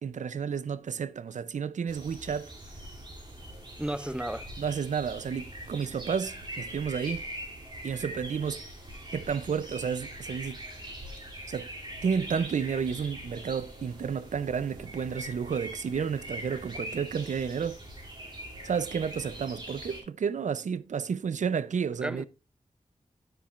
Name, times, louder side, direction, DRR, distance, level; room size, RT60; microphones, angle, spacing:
voice 1, 0.0-2.5 4.6-7.2 7.8-8.7 9.1-10.6 11.5-11.7 12.0-17.8 18.6-22.2, right 6 dB, 90° right, 0.5 m, -31 dB
sound 1, 1.9-20.0, right 1 dB, 40° right, 2.8 m, -42 dB
voice 2, 3.8-4.5 22.0-22.3, right 1 dB, 10° right, 0.6 m, -33 dB
9.9 x 8.9 x 2.4 m
wide cardioid pair, 95°, 12 cm